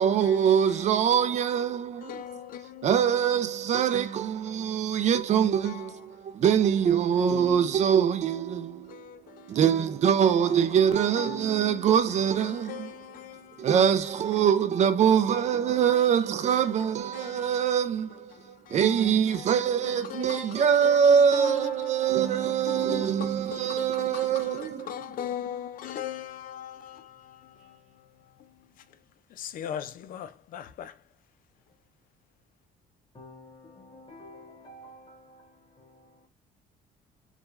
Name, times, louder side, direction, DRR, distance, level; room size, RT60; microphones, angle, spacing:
voice 1, 0.0-2.2 2.8-13.1 13.6-25.0, right 8 dB, 45° right, 0.4 m, -24 dB
voice 2, 2.0-3.0 4.5-4.6 5.6-5.9 8.9-9.6 11.2-11.4 12.4-13.7 16.5-16.7 17.1-17.6 18.3-19.5 19.8-22.1 22.4-28.1 28.4-28.7 29.3-31.0, left 10 dB, 55° left, 0.4 m, -40 dB
voice 3, 33.1-36.3, left 1 dB, 30° left, 1.2 m, -50 dB
2.3 x 2.2 x 3.1 m
cardioid pair, 110°, 17 cm